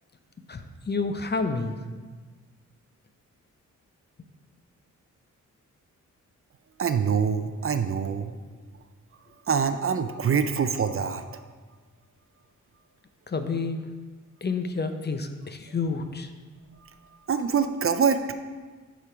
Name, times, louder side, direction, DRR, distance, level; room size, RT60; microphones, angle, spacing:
voice 1, 0.5-1.8 13.3-13.9 14.4-16.3, left 4 dB, 35° left, 8 dB, 0.6 m, -29 dB
voice 2, 6.8-8.4 9.5-11.3 17.3-18.3, right 6 dB, 45° right, 9 dB, 0.5 m, -25 dB
7.2 x 5.1 x 5.0 m, 1.4 s
cardioid pair, 75°, 31 cm